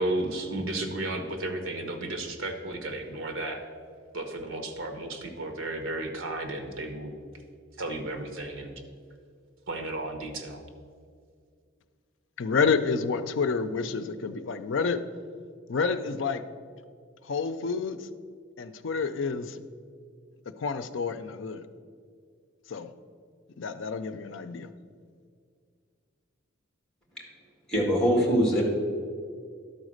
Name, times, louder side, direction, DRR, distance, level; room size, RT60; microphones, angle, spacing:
voice 1, 0.0-3.6 4.1-7.1 7.8-8.7 9.7-10.6, right 2 dB, 75° right, 5 dB, 1.2 m, -33 dB
voice 2, 12.4-15.0 15.7-16.4 17.2-18.1 18.6-19.6 20.6-21.6 22.7-22.9 23.6-24.7, left 5 dB, 65° left, 10 dB, 0.5 m, -29 dB
voice 3, 27.7-28.6, equal, 5° left, -2 dB, 1.8 m, -22 dB
11.5 x 4.0 x 6.4 m, 2.1 s
head